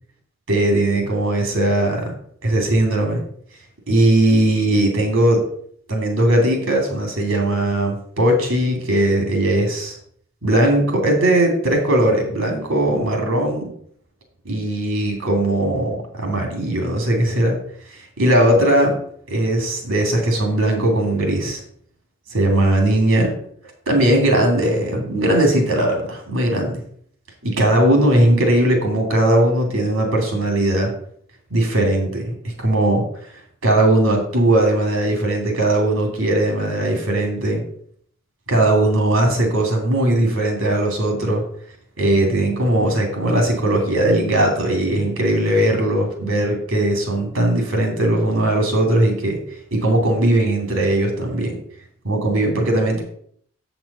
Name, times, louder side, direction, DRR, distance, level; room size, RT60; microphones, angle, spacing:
voice 1, 0.5-2.1 2.4-3.2 3.9-5.4 5.9-10.0 10.4-13.7 14.4-17.6 18.2-19.0 19.3-21.6 22.3-23.3 23.9-26.7 27.4-30.9 31.5-33.0 33.6-37.6 38.5-41.4 42.0-49.4 49.7-51.6 52.0-53.0, right 1 dB, 70° right, 2 dB, 2.7 m, -19 dB
7.5 x 6.0 x 5.4 m, 0.62 s
head